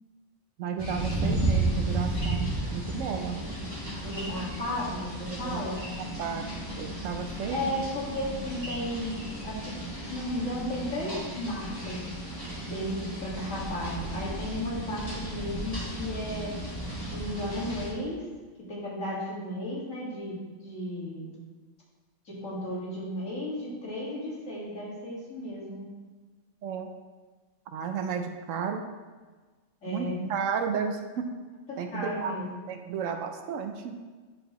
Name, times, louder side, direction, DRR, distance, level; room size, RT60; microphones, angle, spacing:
voice 1, 0.6-3.4 5.3-5.6 6.2-6.5 6.8-7.7 26.6-26.9 27.7-28.8 29.9-31.3 31.8-32.4 32.7-33.9, right 6 dB, 85° right, 6 dB, 1.1 m, -33 dB
sound 1, 0.8-17.9, right 1 dB, 20° left, 2.1 m, -34 dB
voice 2, 4.0-5.8 7.5-9.2 9.4-12.0 12.7-16.6 17.1-18.2 18.7-21.3 22.3-25.9 29.8-30.2 31.9-32.5, left 1 dB, 90° left, -6 dB, 2.4 m, -34 dB
10.5 x 4.8 x 3.1 m, 1.4 s
omnidirectional pair, 1.3 m